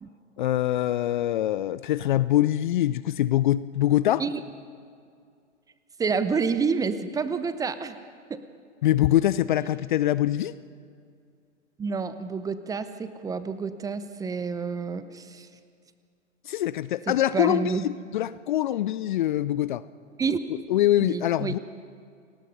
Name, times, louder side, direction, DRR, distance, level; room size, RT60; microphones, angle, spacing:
voice 1, 0.4-4.2 8.8-10.5 16.5-19.8 20.7-21.6, left 13 dB, 40° left, 17 dB, 0.5 m, -24 dB
voice 2, 6.0-8.0 8.3-8.4 11.8-15.5 17.1-17.8 20.2-20.4 21.0-21.5, right 5 dB, 10° right, 12 dB, 0.7 m, -29 dB
29.0 x 19.5 x 5.4 m, 2.3 s
figure-of-eight pair, 105°, 36 cm